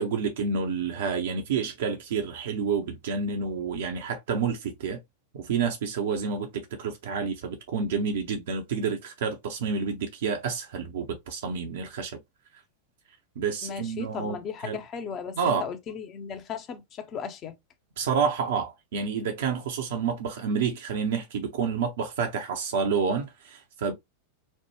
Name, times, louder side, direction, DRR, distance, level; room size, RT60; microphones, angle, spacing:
voice 1, 0.0-5.0 5.3-12.2 13.4-14.4 14.6-14.8 15.4-15.7 18.0-23.9, right 6 dB, 60° right, 0.6 m, -29 dB
voice 2, 13.6-17.6, left 6 dB, 30° left, 0.6 m, -36 dB
3.1 x 2.1 x 3.1 m
figure-of-eight pair, 90°, 0 cm